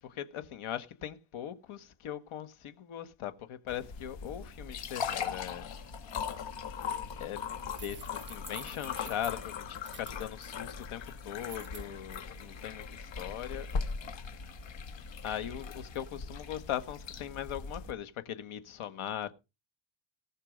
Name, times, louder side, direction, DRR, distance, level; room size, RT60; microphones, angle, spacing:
voice 1, 0.0-5.7 7.2-7.4 7.7-13.7 15.2-19.3, left 10 dB, 80° left, 1.7 m, -40 dB
sound 1, 3.7-17.9, left 6 dB, 65° left, 2.0 m, -39 dB
sound 2, 7.7-10.5 11.4-11.8, right 5 dB, 20° right, 1.4 m, -49 dB
18.5 x 6.7 x 5.3 m
cardioid pair, 160°, 49 cm